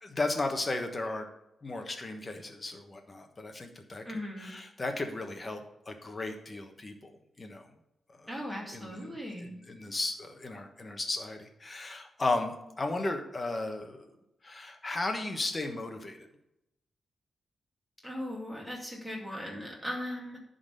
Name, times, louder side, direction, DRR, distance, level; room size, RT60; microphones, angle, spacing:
voice 1, 0.0-1.3 1.6-5.6 5.9-7.1 7.4-7.7 8.2-8.3 8.7-9.2 9.4-14.1 14.4-16.3, left 2 dB, 25° left, 5 dB, 1.2 m, -35 dB
voice 2, 4.1-4.5 8.3-9.5 18.0-20.4, equal, ahead, -3 dB, 2.4 m, -38 dB
10.5 x 4.0 x 6.7 m, 0.87 s
wide cardioid pair, 135°, 0 cm